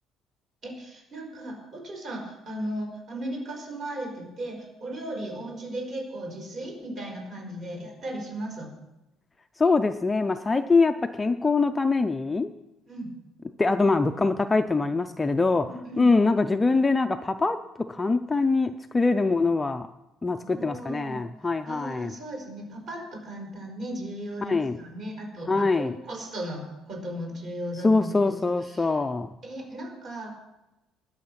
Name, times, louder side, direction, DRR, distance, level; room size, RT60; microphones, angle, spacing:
voice 1, 0.6-8.7 12.9-13.2 15.6-16.1 20.4-21.2 21.6-28.4 28.6-28.9 29.4-30.3, right 1 dB, 40° right, 1 dB, 4.6 m, -36 dB
voice 2, 9.6-12.5 13.6-15.7 16.0-17.6 17.9-19.9 20.2-22.1 24.4-24.8 25.5-25.9 27.8-29.3, left 3 dB, 10° left, 7 dB, 0.4 m, -23 dB
20.5 x 7.0 x 5.8 m, 0.96 s
cardioid pair, 160°, 0 cm